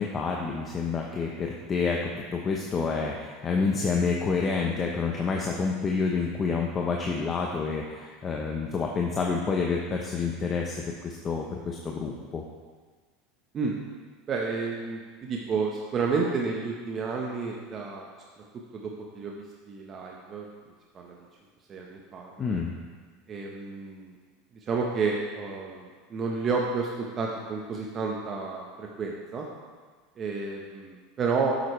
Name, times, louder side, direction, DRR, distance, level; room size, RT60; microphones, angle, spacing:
voice 1, 0.0-12.4 22.4-22.7, left 4 dB, 30° left, 0 dB, 0.9 m, -28 dB
voice 2, 14.3-18.1 18.7-20.5 20.9-21.2 21.7-22.6 23.3-24.1 24.7-29.4 30.2-31.6, right 4 dB, 35° right, -1 dB, 1.1 m, -31 dB
9.3 x 7.9 x 3.3 m, 1.5 s
hypercardioid pair, 90°, 0 cm